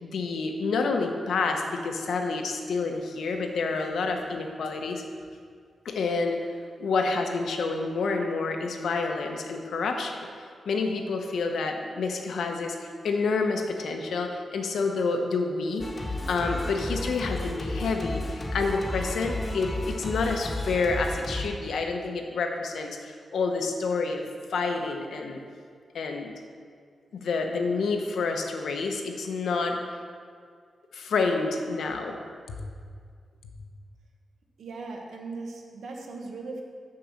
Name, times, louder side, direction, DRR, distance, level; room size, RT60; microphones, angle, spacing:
voice 1, 0.0-5.0 5.8-6.4 6.8-10.2 10.7-15.9 16.3-24.2 24.5-25.4 25.9-26.3 27.1-29.8 30.9-32.2 32.5-32.6, left 4 dB, 80° left, 3 dB, 0.9 m, -28 dB
Singing, 15.8-21.5, left 1 dB, 25° left, 1.0 m, -33 dB
voice 2, 34.6-36.6, right 3 dB, 80° right, 1 dB, 1.2 m, -38 dB
6.6 x 5.5 x 7.3 m, 2.1 s
wide cardioid pair, 175°, 0 cm